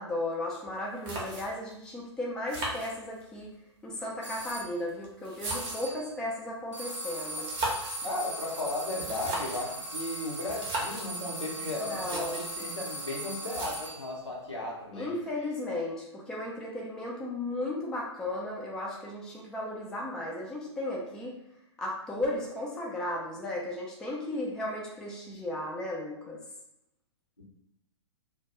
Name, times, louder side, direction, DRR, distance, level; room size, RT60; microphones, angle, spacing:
voice 1, 0.0-3.5 3.8-7.4 11.8-12.4 14.9-21.4 21.8-26.4, left 1 dB, 5° left, -3 dB, 0.3 m, -35 dB
sound 1, 0.7-0.8 1.0-1.7 2.5-3.4 4.3-6.0 7.3-8.1 8.9-9.7 10.5-11.1 11.6-11.7 11.9-12.6 13.5-14.1, right 2 dB, 30° right, 0.7 m, -36 dB
sound 2, 4.2-4.7 5.4-6.1 6.7-14.1, right 1 dB, 90° right, 0.5 m, -39 dB
voice 2, 8.0-15.1 27.4-27.5, left 2 dB, 80° left, -3 dB, 0.8 m, -35 dB
2.2 x 2.2 x 2.8 m, 0.82 s
figure-of-eight pair, 110°, 15 cm